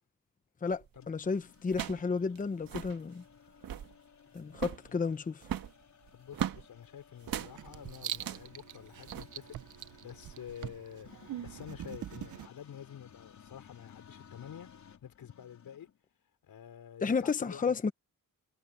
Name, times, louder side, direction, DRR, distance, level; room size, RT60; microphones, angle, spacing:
voice 1, 0.6-3.2 4.3-5.4 17.0-17.9, left 5 dB, 25° left, 0.8 m, -32 dB
sound 1, 0.7-1.0 1.7-2.1 2.4-2.5 2.6-3.0 3.5-3.9 4.5-4.9 5.4-6.6 7.2-7.5 8.1-8.5 9.1-9.2, right 10 dB, 80° right, 1.6 m, -37 dB
sound 2, 1.0-16.0, left 7 dB, 55° left, 4.1 m, -58 dB
voice 2, 6.1-14.7 15.0-15.9 16.4-17.7, left 9 dB, 90° left, 5.5 m, -49 dB
Writing, 7.3-12.5, right 11 dB, 60° right, 0.7 m, -43 dB
wide cardioid pair, 165°, 34 cm